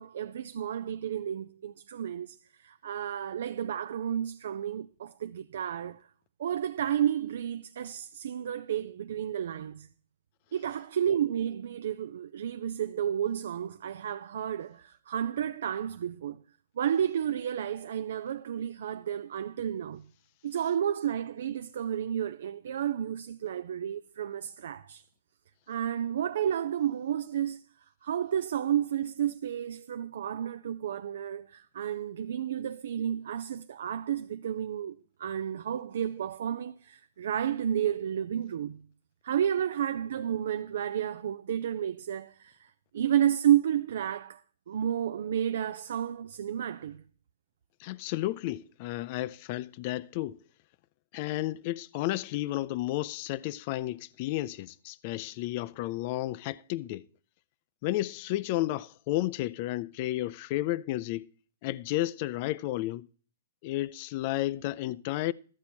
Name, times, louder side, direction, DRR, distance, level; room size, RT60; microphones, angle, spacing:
voice 1, 0.0-6.0 6.4-9.9 10.5-16.4 16.8-20.1 20.4-25.0 25.7-27.6 28.0-38.9 39.2-42.7 42.9-44.4 44.7-47.0, right 9 dB, 70° right, 0.4 m, -31 dB
voice 2, 47.8-50.4 51.1-57.1 57.8-61.3 61.6-63.1 63.6-65.3, left 16 dB, 40° left, 0.4 m, -32 dB
13.0 x 8.3 x 4.4 m
hypercardioid pair, 150°, 0 cm